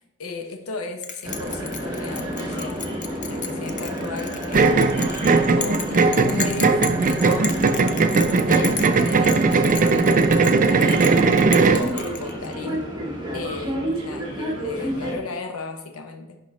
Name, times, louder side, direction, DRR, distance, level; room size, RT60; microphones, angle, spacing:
voice 1, 0.0-2.8 3.3-5.0 5.5-7.5 8.2-11.2 11.8-12.9 13.3-16.4, left 3 dB, 80° left, 4 dB, 0.8 m, -35 dB
Bell, 1.0-12.7, left 7 dB, 35° left, 0.5 m, -34 dB
London Underground- one-stop journey and station ambience, 1.2-15.1, equal, 20° right, 1.5 m, -30 dB
sound 1, 4.5-11.9, right 4 dB, 40° right, 0.4 m, -18 dB
10.5 x 4.0 x 3.1 m, 0.94 s
head